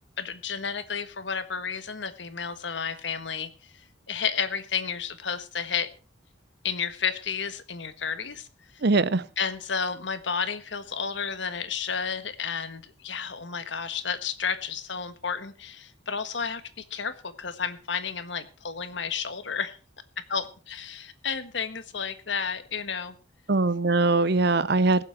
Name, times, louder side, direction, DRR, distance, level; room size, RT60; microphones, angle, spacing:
voice 1, 0.2-3.7 4.1-5.9 6.6-8.5 9.4-19.8 20.3-23.2, left 6 dB, 70° left, 11 dB, 1.4 m, -32 dB
voice 2, 8.8-9.2 23.5-25.0, right 3 dB, 55° right, 16 dB, 0.7 m, -21 dB
21.5 x 7.4 x 4.5 m, 0.33 s
head